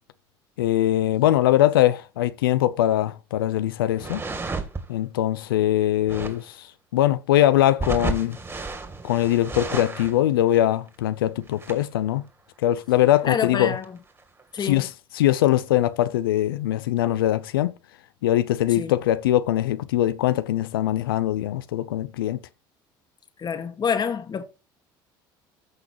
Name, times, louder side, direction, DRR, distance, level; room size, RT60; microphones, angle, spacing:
voice 1, 0.6-4.2 4.9-6.7 6.9-8.4 9.0-12.2 12.6-13.7 14.6-14.9 15.1-17.7 18.2-22.4, left 13 dB, 90° left, 0.6 m, -22 dB
sound 1, 3.9-4.9 6.0-6.4 7.8-10.2 10.5-10.6 10.9-11.0 11.5-11.8 13.0-13.4 13.8-13.9 14.2-14.6, right 3 dB, 20° right, 2.8 m, -32 dB
voice 2, 13.2-14.0 14.5-14.9 18.7-18.9 23.4-24.4, left 6 dB, 40° left, 1.8 m, -27 dB
14.5 x 6.0 x 3.0 m
hypercardioid pair, 75°, 12 cm